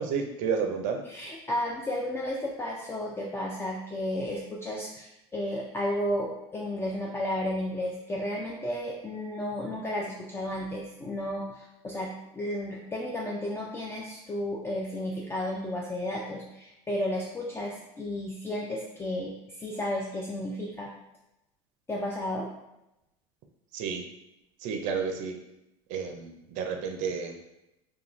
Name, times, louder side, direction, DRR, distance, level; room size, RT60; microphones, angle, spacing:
voice 1, 0.0-1.0 23.7-24.0 24.6-25.4 25.9-27.4, right 6 dB, 60° right, 4 dB, 0.5 m, -31 dB
voice 2, 1.1-20.9 21.9-22.5, left 1 dB, 15° left, -2 dB, 0.4 m, -33 dB
2.4 x 2.2 x 3.0 m, 0.88 s
hypercardioid pair, 90°, 15 cm